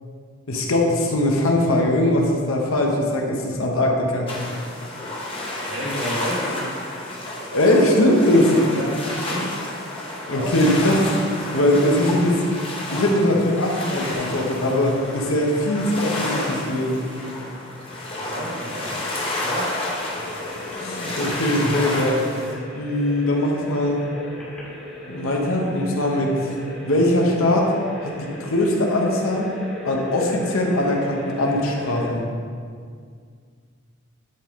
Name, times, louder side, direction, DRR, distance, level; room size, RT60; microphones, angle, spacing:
voice 1, 0.5-4.3 7.5-8.5 10.3-11.1 11.5-12.4 12.9-17.1 20.8-22.3 22.7-24.0 25.1-26.4 26.8-27.7 28.0-29.5 29.8-32.2, left 1 dB, 85° left, 0 dB, 1.0 m, -21 dB
sound 1, 4.3-22.5, left 1 dB, 25° left, 1.1 m, -30 dB
voice 2, 5.7-6.7 8.6-9.5 10.3-10.5 17.6-19.8, equal, 85° right, -4 dB, 1.6 m, -32 dB
sound 2, 19.1-32.1, left 1 dB, 5° left, 1.6 m, -37 dB
10.0 x 3.6 x 3.7 m, 2.1 s
head